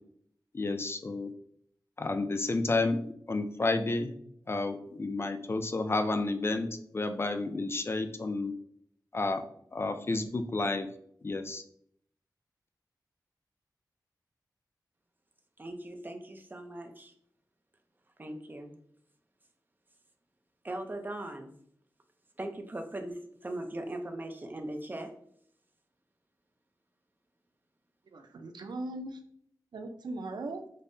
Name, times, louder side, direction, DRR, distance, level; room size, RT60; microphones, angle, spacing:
voice 1, 0.5-1.3 2.0-3.0 3.3-4.1 4.5-6.7 6.9-8.5 9.1-9.4 9.7-10.9 11.2-11.6, left 3 dB, 35° left, 8 dB, 0.3 m, -30 dB
voice 2, 15.6-17.1 18.2-18.7 20.6-21.5 22.4-25.1, right 1 dB, 25° right, 5 dB, 0.5 m, -39 dB
voice 3, 28.1-29.2 29.7-30.6, right 2 dB, 80° right, 6 dB, 0.4 m, -39 dB
5.2 x 2.1 x 2.5 m, 0.67 s
wide cardioid pair, 100°, 7 cm